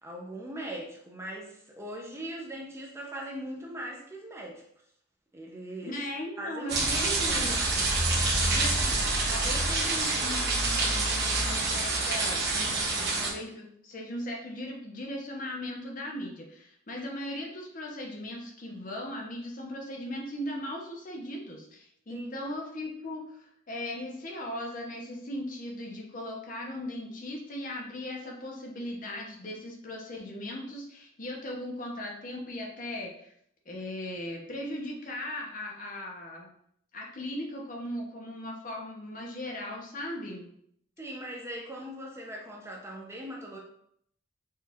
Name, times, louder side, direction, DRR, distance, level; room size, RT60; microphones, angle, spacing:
voice 1, 0.0-4.6 5.3-5.9 6.4-7.5 22.1-22.4 41.0-43.6, right 1 dB, 15° right, -1 dB, 0.5 m, -40 dB
voice 2, 5.8-8.0 8.5-33.3 33.7-36.5 36.9-40.5, left 1 dB, 40° left, 0 dB, 0.7 m, -38 dB
sound 1, 6.7-13.3, right 2 dB, 55° right, 1.2 m, -27 dB
4.5 x 2.4 x 3.4 m, 0.69 s
head